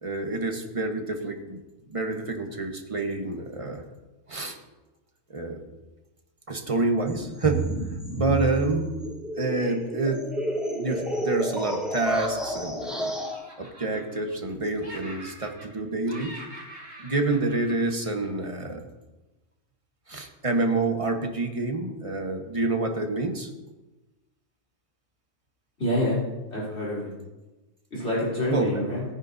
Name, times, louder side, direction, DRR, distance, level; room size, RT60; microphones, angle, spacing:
voice 1, 0.0-1.6 1.9-3.8 4.3-4.6 5.3-5.6 6.5-9.0 9.3-10.3 10.8-13.1 13.6-16.4 17.0-18.8 20.1-23.5 28.5-28.8, right 2 dB, 25° right, 4 dB, 1.2 m, -28 dB
sound 1, 7.1-13.3, right 1 dB, ahead, 2.3 m, -31 dB
Laughter, 11.8-12.9 13.2-14.5 14.8-18.6, right 1 dB, 70° right, 3.6 m, -45 dB
voice 2, 25.8-26.2 26.5-27.1 27.9-29.0, left 1 dB, 55° left, -6 dB, 3.7 m, -27 dB
17.5 x 9.8 x 2.7 m, 1.1 s
omnidirectional pair, 1.4 m